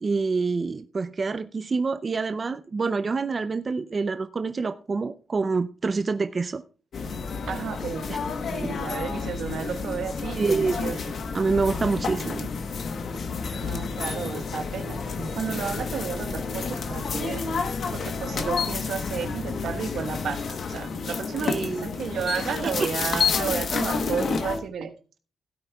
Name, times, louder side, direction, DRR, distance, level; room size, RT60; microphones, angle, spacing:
voice 1, 0.0-6.6 8.1-8.2 10.3-10.8 11.3-12.5 21.4-21.8 22.8-22.9, right 4 dB, 35° right, 10 dB, 0.5 m, -26 dB
sound 1, 6.9-24.6, left 5 dB, 65° left, 1.1 m, -30 dB
voice 2, 7.4-8.1 8.5-11.1 13.6-17.6 17.9-24.9, right 6 dB, 85° right, 7 dB, 1.2 m, -32 dB
16.5 x 9.1 x 2.3 m, 0.36 s
cardioid pair, 110°, 0 cm